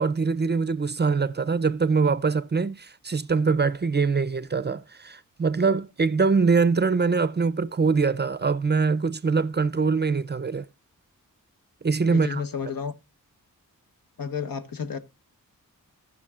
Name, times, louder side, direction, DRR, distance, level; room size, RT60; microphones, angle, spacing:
voice 1, 0.0-10.6 11.8-12.4, right 4 dB, 30° right, 0.5 m, -23 dB
voice 2, 12.1-12.9 14.2-15.0, left 6 dB, 75° left, 1.1 m, -31 dB
17.5 x 6.1 x 2.4 m
wide cardioid pair, 100°, 34 cm